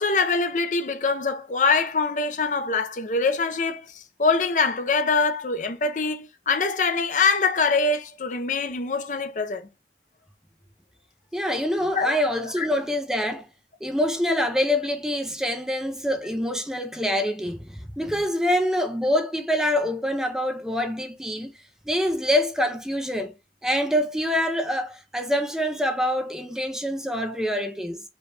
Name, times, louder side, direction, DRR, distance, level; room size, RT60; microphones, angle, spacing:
voice 1, 0.0-9.7 11.9-12.2 12.6-12.7, left 4 dB, 45° left, 0.6 m, -24 dB
voice 2, 11.3-13.5 13.8-21.5 21.9-23.3 23.6-28.0, equal, 5° right, 0.5 m, -25 dB
5.2 x 2.4 x 3.2 m
head